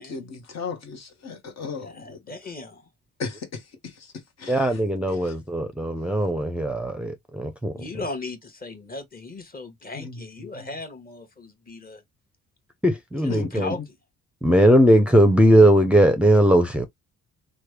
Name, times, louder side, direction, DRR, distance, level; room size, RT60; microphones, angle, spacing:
voice 1, 0.0-2.2 3.2-4.8 5.1-5.3 9.9-10.2 10.6-10.7 13.3-13.5, left 5 dB, 60° left, 1.1 m, -36 dB
voice 2, 1.8-2.9 7.7-12.0 13.2-14.0, left 3 dB, 30° left, 1.2 m, -37 dB
voice 3, 4.5-7.7 12.8-13.7 14.4-16.9, right 1 dB, 5° right, 0.6 m, -19 dB
3.2 x 2.2 x 3.2 m
cardioid pair, 90°, 30 cm